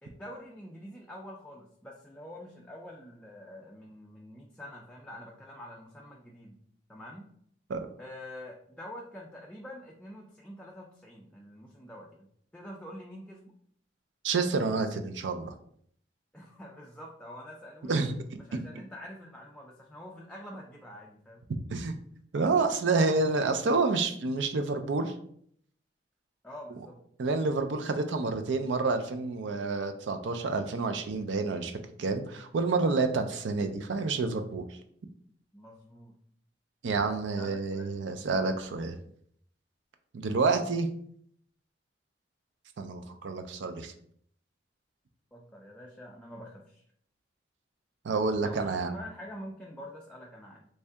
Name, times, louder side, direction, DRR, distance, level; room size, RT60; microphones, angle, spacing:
voice 1, 0.0-6.6 6.9-7.3 8.0-12.3 12.5-13.5 16.3-18.0 18.4-21.5 26.4-27.0 35.5-36.1 37.0-37.9 45.3-46.8 48.4-50.7, left 1 dB, 5° left, -2 dB, 0.4 m, -46 dB
voice 2, 14.2-15.5 17.9-18.1 21.7-22.0 22.3-25.1 27.2-31.7 32.0-34.6 36.8-38.9 40.1-40.9 42.8-43.9 48.0-49.0, right 3 dB, 85° right, 7 dB, 0.4 m, -28 dB
3.2 x 2.7 x 3.4 m, 0.65 s
head